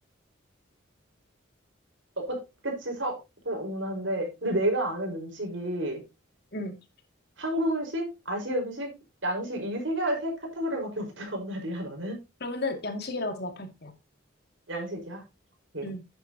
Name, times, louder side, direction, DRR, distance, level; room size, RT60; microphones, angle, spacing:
voice 1, 2.6-3.1 3.4-6.0 7.4-8.9 9.2-12.2 14.7-15.2 15.7-15.9, right 1 dB, 70° right, 2 dB, 5.2 m, -30 dB
voice 2, 12.4-13.9 15.8-16.0, left 2 dB, 50° left, 5 dB, 2.3 m, -33 dB
10.5 x 9.1 x 2.9 m, 0.24 s
head